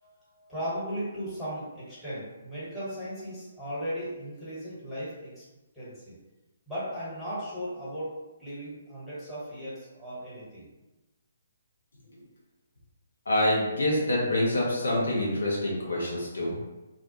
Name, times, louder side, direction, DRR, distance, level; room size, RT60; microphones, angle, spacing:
voice 1, 0.0-5.4 5.7-6.2 6.7-8.1 8.4-10.7, equal, 5° left, -12 dB, 1.2 m, -37 dB
voice 2, 13.3-16.6, left 1 dB, 70° left, -5 dB, 0.7 m, -26 dB
2.4 x 2.1 x 2.7 m, 1.1 s
figure-of-eight pair, 135°, 0 cm